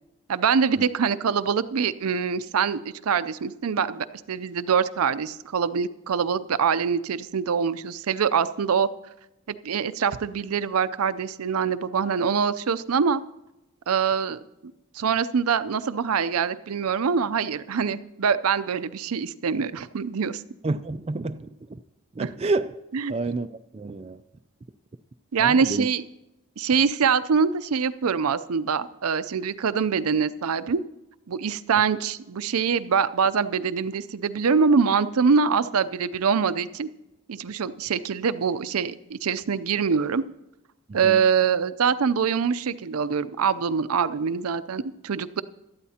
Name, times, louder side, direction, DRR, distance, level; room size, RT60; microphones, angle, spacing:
voice 1, 0.3-8.9 9.5-13.2 13.9-14.4 14.9-20.4 22.2-22.3 22.9-23.1 25.3-26.0 26.6-30.8 31.3-36.9 37.3-40.2 40.9-45.4, right 6 dB, 85° right, 0.5 m, -24 dB
voice 2, 20.6-21.8 22.2-22.7 23.1-24.2 25.4-25.9 41.0-41.2, right 3 dB, 30° right, 0.3 m, -29 dB
17.5 x 12.5 x 2.8 m
head